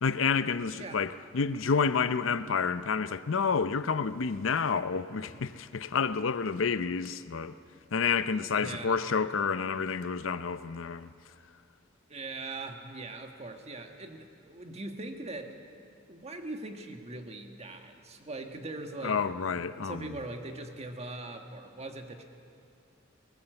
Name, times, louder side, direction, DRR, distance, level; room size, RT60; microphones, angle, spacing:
voice 1, 0.0-7.5 7.9-11.1 19.0-20.1, left 5 dB, 80° left, 0.6 m, -29 dB
voice 2, 8.3-9.0 12.1-15.5 16.1-19.3 19.8-22.2, right 2 dB, 35° right, 1.6 m, -41 dB
19.5 x 18.5 x 7.9 m
head